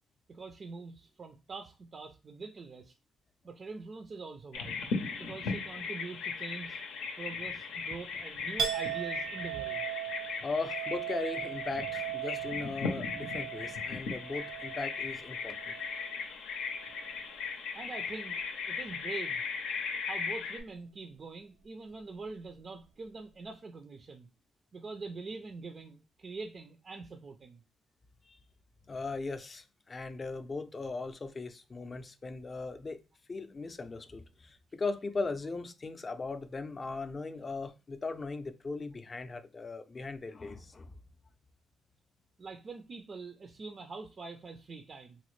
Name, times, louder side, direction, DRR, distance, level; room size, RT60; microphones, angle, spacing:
voice 1, 0.3-2.9 3.4-4.8 5.2-6.8 7.2-9.9 17.7-18.4 18.7-19.4 20.1-24.3 24.7-27.6 42.4-45.2, right 4 dB, 40° right, 0.4 m, -44 dB
Bird vocalization bird call bird song, 4.5-20.6, left 5 dB, 90° left, 0.6 m, -38 dB
Chink clink, 8.6-16.3 16.6-17.3, right 10 dB, 75° right, 0.7 m, -39 dB
voice 2, 10.4-15.7 28.2-28.4 28.9-33.0 33.3-41.0, left 3 dB, 30° left, 0.4 m, -38 dB
4.0 x 2.0 x 3.1 m
cardioid pair, 90°, 0 cm